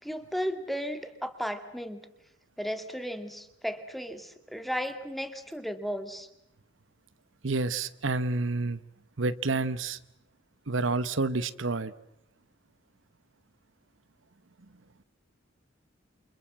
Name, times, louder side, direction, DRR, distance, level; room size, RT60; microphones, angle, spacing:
voice 1, 0.0-2.1 2.6-6.3, equal, ahead, 9 dB, 2.1 m, -35 dB
voice 2, 7.4-8.8 9.2-10.0 10.7-11.9, right 3 dB, 70° right, 15 dB, 1.0 m, -29 dB
29.0 x 26.0 x 7.5 m, 0.79 s
head